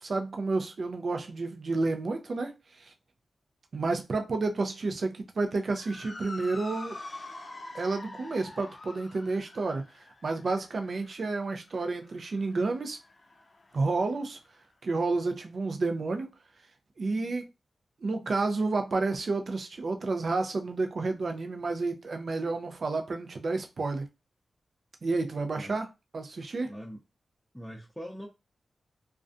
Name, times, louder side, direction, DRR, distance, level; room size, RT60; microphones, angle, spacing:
voice 1, 0.0-2.9 3.7-7.0 7.7-13.0 13.7-14.4 14.8-16.3 17.0-17.5 18.0-24.1 25.0-25.9 26.1-26.7, right 3 dB, 60° right, 0.5 m, -30 dB
Motor vehicle (road) / Siren, 5.6-14.2, left 2 dB, 45° left, 0.4 m, -46 dB
voice 2, 26.6-27.0 27.5-28.3, equal, ahead, 0.6 m, -42 dB
2.3 x 2.2 x 2.5 m
cardioid pair, 45°, 0 cm